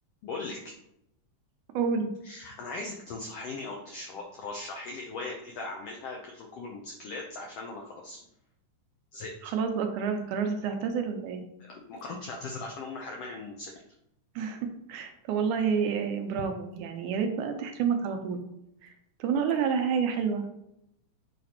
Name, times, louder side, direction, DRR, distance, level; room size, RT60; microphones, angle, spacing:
voice 1, 0.2-0.7 2.2-8.2 9.1-9.3 11.6-13.7, left 3 dB, 80° left, 1 dB, 1.4 m, -39 dB
voice 2, 1.7-2.1 9.4-11.4 14.4-14.6 14.9-18.4 18.8-18.9 19.2-20.5, right 6 dB, 80° right, 5 dB, 2.2 m, -29 dB
8.5 x 4.9 x 2.9 m, 0.81 s
omnidirectional pair, 3.7 m